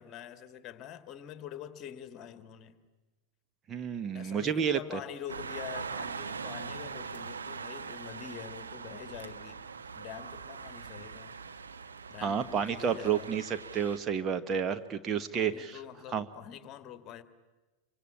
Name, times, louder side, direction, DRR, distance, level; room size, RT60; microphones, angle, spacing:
voice 1, 0.0-2.8 4.1-9.6 9.9-11.4 12.1-13.3 15.3-17.2, left 10 dB, 30° left, 11 dB, 1.9 m, -45 dB
voice 2, 3.7-5.0 12.2-13.4 13.7-15.8 16.1-16.2, right 7 dB, 25° right, 8 dB, 1.1 m, -30 dB
sound 1, 5.3-14.0, right 5 dB, 70° right, 1.5 m, -42 dB
27.0 x 25.0 x 8.8 m, 1.2 s
figure-of-eight pair, 90°, 0 cm